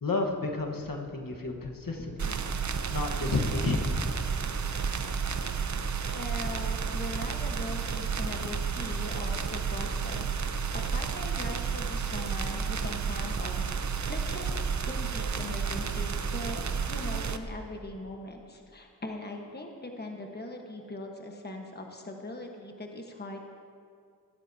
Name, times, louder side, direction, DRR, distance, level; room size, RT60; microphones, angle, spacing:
voice 1, 0.0-2.4 2.9-4.2, left 3 dB, 60° left, 1 dB, 1.4 m, -31 dB
sound 1, 2.2-17.4, right 6 dB, 50° right, 0.7 m, -31 dB
voice 2, 6.1-10.3 10.7-13.7 14.1-16.6 16.9-23.5, left 1 dB, 25° left, 2 dB, 1.3 m, -40 dB
15.0 x 12.5 x 2.8 m, 2.4 s
cardioid pair, 55°, 38 cm